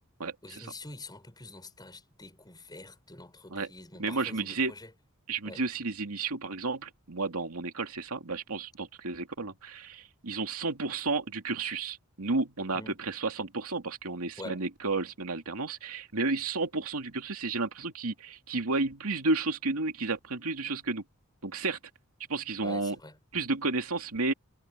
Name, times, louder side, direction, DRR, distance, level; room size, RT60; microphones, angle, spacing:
voice 1, 0.4-4.9 5.4-5.6 12.7-13.0 14.4-14.6 22.6-23.2, left 2 dB, 20° left, 6.2 m, -46 dB
voice 2, 4.0-4.7 5.3-21.0 21.4-21.8 22.3-23.0 23.3-24.3, right 3 dB, 85° right, 2.5 m, -32 dB
head